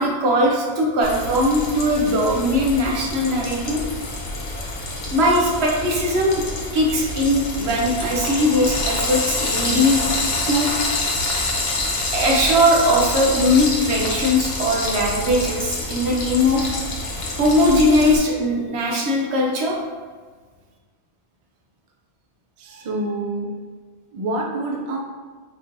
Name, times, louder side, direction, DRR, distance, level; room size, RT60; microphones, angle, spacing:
voice 1, 0.0-3.8 5.1-6.4 6.7-10.0 10.5-10.7 12.1-16.7 17.4-19.8, left 1 dB, 75° right, -2 dB, 1.0 m, -19 dB
Frying (food), 1.0-18.2, left 2 dB, 65° left, 0.9 m, -27 dB
voice 2, 22.6-23.5 24.1-25.0, right 2 dB, 50° right, 0 dB, 0.4 m, -27 dB
4.3 x 3.0 x 2.6 m, 1.5 s
omnidirectional pair, 1.1 m